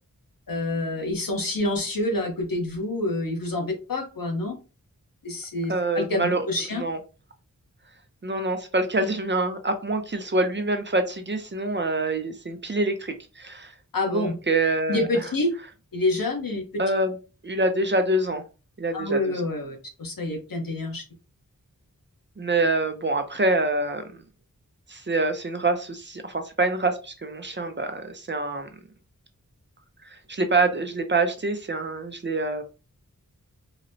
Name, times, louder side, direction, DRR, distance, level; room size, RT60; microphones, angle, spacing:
voice 1, 0.5-4.5 5.2-6.8 13.9-14.3 14.9-15.5 15.9-16.6 18.9-21.0, left 2 dB, 75° left, 2 dB, 0.9 m, -27 dB
voice 2, 5.7-6.5 6.7-7.0 8.2-13.7 14.1-15.2 16.8-17.2 17.4-18.4 18.8-19.4 22.4-24.0 24.9-28.7 30.1-32.6, right 2 dB, 35° right, 7 dB, 0.5 m, -26 dB
3.9 x 2.0 x 2.6 m, 0.32 s
wide cardioid pair, 75°, 34 cm